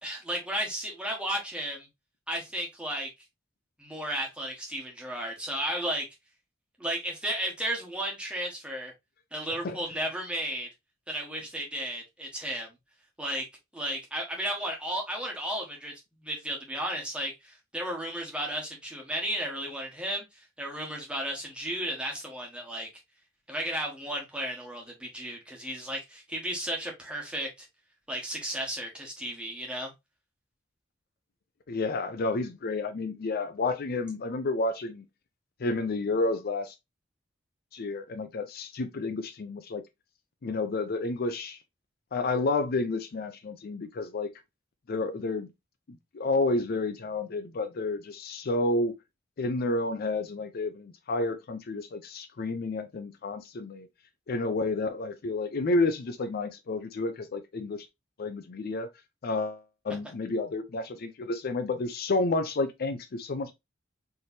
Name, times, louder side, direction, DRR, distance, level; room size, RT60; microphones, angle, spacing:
voice 1, 0.0-1.9 2.3-3.1 3.8-6.1 6.8-8.9 9.3-10.7 11.1-12.7 13.2-13.5 13.7-15.9 16.2-22.9 23.5-27.7 28.1-29.9, right 1 dB, 5° right, 1.4 m, -34 dB
voice 2, 31.7-35.0 35.6-36.7 37.7-39.8 40.4-41.6 42.1-44.3 44.9-45.5 46.1-48.9 49.4-53.9 54.3-57.9 58.2-58.9 59.2-63.5, left 2 dB, 50° left, 0.5 m, -30 dB
4.5 x 3.3 x 2.7 m
head